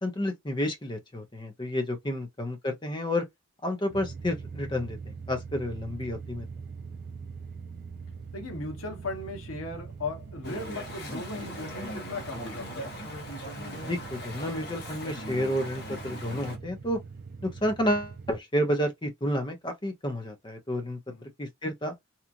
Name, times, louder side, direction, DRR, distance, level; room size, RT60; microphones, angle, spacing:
voice 1, 0.0-3.3 3.6-6.4 13.8-17.0 17.4-21.0 21.4-21.9, equal, 20° left, 0.6 m, -30 dB
sound 1, 3.9-18.4, right 5 dB, 45° right, 0.4 m, -43 dB
voice 2, 5.8-6.1 8.3-13.0 21.1-21.3, left 3 dB, 85° left, 0.9 m, -38 dB
Chatter / Stream, 10.4-16.6, equal, 50° left, 1.0 m, -39 dB
2.9 x 2.4 x 2.4 m
head